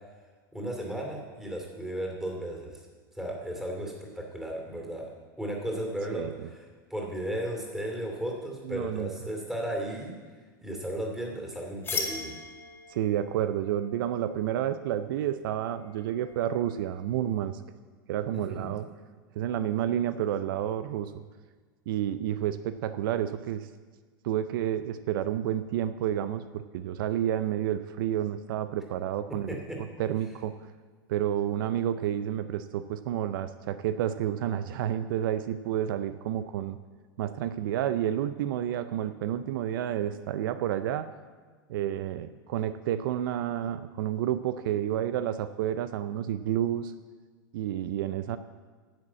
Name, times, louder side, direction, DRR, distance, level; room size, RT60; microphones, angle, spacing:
voice 1, 0.5-2.8 3.1-5.1 5.4-6.3 6.9-10.1 10.6-12.3 18.3-18.7 29.5-29.8, right 1 dB, 5° right, 0 dB, 2.6 m, -35 dB
voice 2, 6.1-6.5 8.6-9.1 12.9-17.6 18.1-18.9 19.4-21.1 21.9-23.7 24.2-29.6 30.0-30.5 31.1-36.8 37.2-41.1 41.7-46.9 47.5-48.4, right 11 dB, 70° right, 12 dB, 0.5 m, -30 dB
sound 1, 11.8-17.4, left 4 dB, 20° left, 2.1 m, -40 dB
10.5 x 7.5 x 7.4 m, 1.4 s
supercardioid pair, 125°, 12 cm